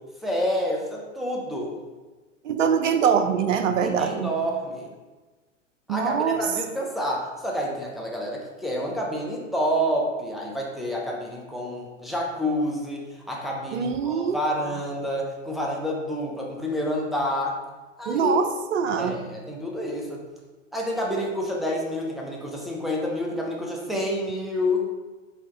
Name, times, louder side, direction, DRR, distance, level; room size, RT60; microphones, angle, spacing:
voice 1, 0.2-1.7 3.8-4.9 5.9-13.0 13.3-17.6 18.0-18.4 19.0-20.2 20.7-24.9, equal, ahead, -2 dB, 0.5 m, -28 dB
voice 2, 2.4-4.4 5.9-6.5 13.7-14.4 18.1-19.2, right 7 dB, 75° right, 8 dB, 0.5 m, -23 dB
4.6 x 2.8 x 3.6 m, 1.2 s
hypercardioid pair, 105°, 38 cm